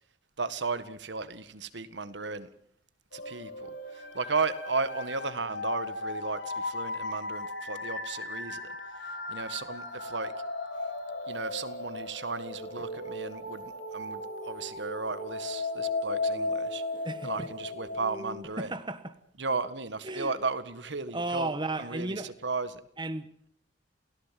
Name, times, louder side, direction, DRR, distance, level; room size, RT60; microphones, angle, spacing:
voice 1, 0.4-2.5 3.1-8.7 9.3-10.3 11.3-16.8 17.2-18.7 19.4-22.8, right 4 dB, 70° right, 1.7 m, -35 dB
sound 1, 3.1-18.3, left 2 dB, 85° left, 6.0 m, -36 dB
voice 2, 17.0-17.5 18.6-19.1 20.0-20.3 21.1-22.3 23.0-23.3, right 2 dB, 25° right, 1.3 m, -34 dB
28.5 x 17.5 x 7.6 m
head